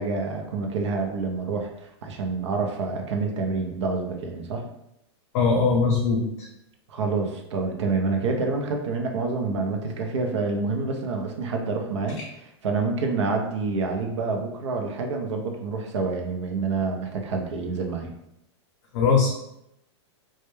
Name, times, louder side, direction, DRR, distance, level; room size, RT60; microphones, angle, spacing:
voice 1, 0.0-4.7 6.9-12.2 12.6-18.1, right 4 dB, 85° right, 3 dB, 0.5 m, -27 dB
voice 2, 5.3-6.2 18.9-19.3, left 4 dB, 55° left, -2 dB, 0.5 m, -20 dB
2.1 x 2.1 x 3.0 m, 0.81 s
supercardioid pair, 155°, 15 cm